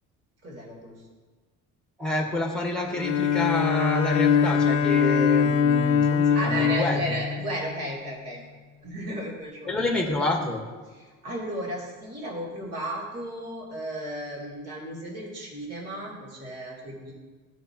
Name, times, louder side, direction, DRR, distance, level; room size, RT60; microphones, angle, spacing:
voice 1, 0.4-1.0 6.3-8.5 8.8-10.0 11.0-17.1, right 1 dB, 50° right, -4 dB, 3.0 m, -34 dB
voice 2, 2.0-7.2 9.7-10.6, left 2 dB, 5° left, 1 dB, 1.4 m, -28 dB
Bowed string instrument, 2.9-8.1, left 6 dB, 45° left, 0.5 m, -23 dB
14.5 x 5.9 x 2.9 m, 1.3 s
cardioid pair, 130°, 33 cm